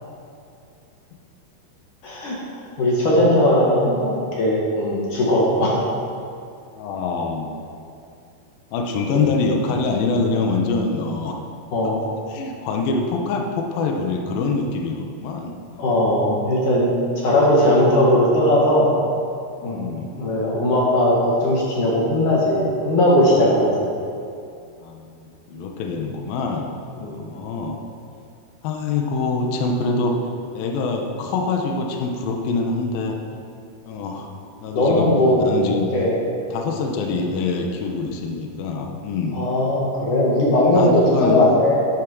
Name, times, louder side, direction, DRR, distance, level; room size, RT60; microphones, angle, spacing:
voice 1, 2.0-2.4 2.8-5.8 11.7-12.0 15.8-16.9 17.2-18.9 19.6-19.9 20.2-23.9 27.0-27.2 34.7-36.2 39.3-41.9, left 1 dB, 60° left, -4 dB, 2.3 m, -18 dB
voice 2, 6.8-7.6 8.7-11.4 12.3-16.1 17.4-17.5 19.6-20.3 24.8-27.8 28.6-30.2 30.5-33.2 33.9-34.3 34.6-35.9 36.5-39.4 40.7-41.4, left 3 dB, 90° left, 2 dB, 2.0 m, -25 dB
13.0 x 8.5 x 6.1 m, 2.5 s
omnidirectional pair, 5.7 m